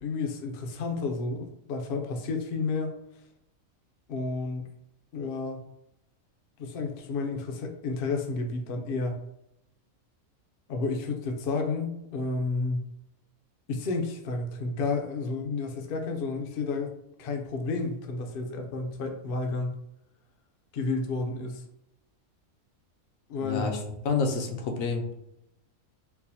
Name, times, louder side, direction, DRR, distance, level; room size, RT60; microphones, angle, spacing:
voice 1, 0.0-3.0 4.1-4.7 5.1-5.6 6.6-9.2 10.7-12.9 13.7-16.9 17.2-19.8 20.7-21.6 23.3-23.7, left 3 dB, 60° left, 4 dB, 0.6 m, -31 dB
voice 2, 23.4-25.2, left 4 dB, 80° left, 4 dB, 1.0 m, -29 dB
4.4 x 2.0 x 2.7 m, 0.81 s
omnidirectional pair, 1.4 m